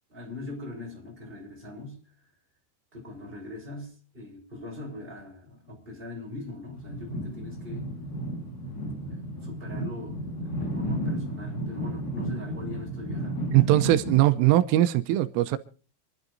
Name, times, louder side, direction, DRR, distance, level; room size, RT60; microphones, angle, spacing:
voice 1, 0.1-2.0 2.9-7.8 9.0-13.6, left 2 dB, 10° right, 5.3 m, -41 dB
sound 1, 6.8-14.2, right 1 dB, 60° left, 6.6 m, -33 dB
voice 2, 13.5-15.6, right 15 dB, 85° right, 3.4 m, -21 dB
27.5 x 12.0 x 2.6 m
omnidirectional pair, 5.7 m